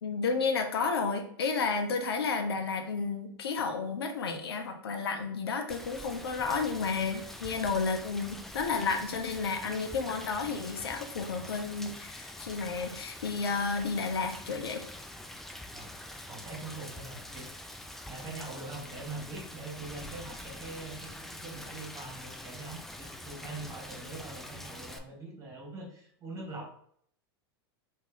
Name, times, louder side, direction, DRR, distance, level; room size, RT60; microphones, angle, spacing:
voice 1, 0.0-14.8, left 4 dB, 90° left, 5 dB, 0.6 m, -32 dB
Rain, 5.7-25.0, left 1 dB, ahead, 0.3 m, -45 dB
voice 2, 16.3-17.5 18.1-26.7, right 3 dB, 25° right, -1 dB, 1.4 m, -43 dB
3.0 x 2.6 x 3.7 m, 0.63 s
hypercardioid pair, 110°, 13 cm